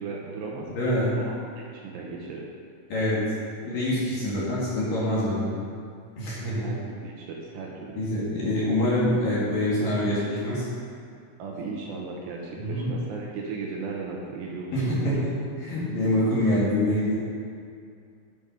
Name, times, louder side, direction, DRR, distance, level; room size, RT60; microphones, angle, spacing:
voice 1, 0.0-0.7 1.1-2.4 6.6-7.9 11.4-15.1, right 4 dB, 75° right, -2 dB, 2.9 m, -36 dB
voice 2, 0.7-1.1 2.9-3.2 3.6-5.6 6.2-6.7 8.0-10.7 12.6-12.9 14.7-17.2, left 1 dB, 55° left, -8 dB, 3.3 m, -25 dB
10.5 x 6.0 x 5.4 m, 2.4 s
omnidirectional pair, 5.4 m